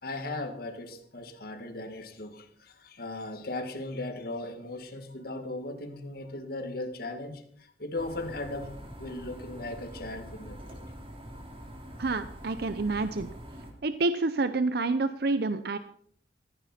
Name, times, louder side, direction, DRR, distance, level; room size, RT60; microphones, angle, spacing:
voice 1, 0.0-10.8, left 2 dB, 60° left, 2.0 m, -38 dB
sound 1, 8.0-13.7, equal, 35° right, 3.2 m, -44 dB
voice 2, 12.0-13.3 13.8-15.8, right 3 dB, 60° right, 0.7 m, -28 dB
16.0 x 14.5 x 4.4 m
head